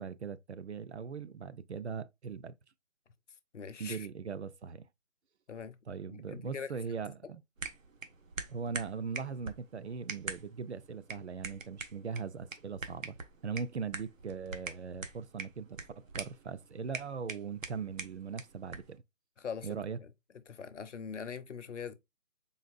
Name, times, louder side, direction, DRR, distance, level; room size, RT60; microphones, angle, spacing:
voice 1, 0.0-2.5 3.8-4.9 5.9-7.4 8.5-13.2 13.4-15.8 16.1-19.0 19.6-20.0, right 5 dB, 60° right, 0.5 m, -40 dB
voice 2, 3.5-4.1 5.5-5.8 6.1-6.7 19.4-20.1 20.5-21.9, left 6 dB, 65° left, 0.7 m, -42 dB
sound 1, 7.6-19.0, right 4 dB, 90° right, 1.0 m, -44 dB
4.0 x 3.8 x 2.5 m
hypercardioid pair, 175°, 38 cm